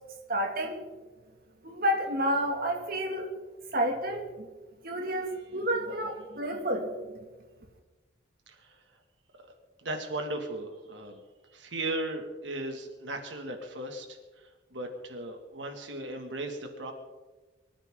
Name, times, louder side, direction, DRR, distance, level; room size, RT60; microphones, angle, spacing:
voice 1, 0.3-0.9 1.6-3.3 3.7-4.5 4.8-6.9, equal, 50° right, 2 dB, 2.3 m, -30 dB
voice 2, 8.5-9.0 9.4-16.9, right 1 dB, 75° right, 4 dB, 2.2 m, -37 dB
24.5 x 14.5 x 3.8 m, 1.2 s
head